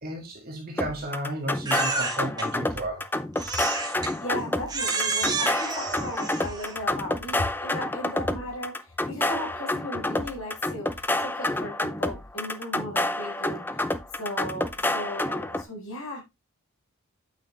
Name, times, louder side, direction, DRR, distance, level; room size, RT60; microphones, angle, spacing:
voice 1, 0.0-3.1, right 1 dB, 40° right, 2.0 m, -33 dB
sound 1, 0.8-15.6, left 1 dB, 10° left, 0.5 m, -29 dB
Crying sobbing, 1.7-2.5 3.4-4.1 4.7-6.8, right 4 dB, 20° right, 1.5 m, -29 dB
voice 2, 4.2-13.9 14.2-16.2, left 1 dB, 70° left, 3.8 m, -36 dB
8.8 x 6.4 x 3.2 m
head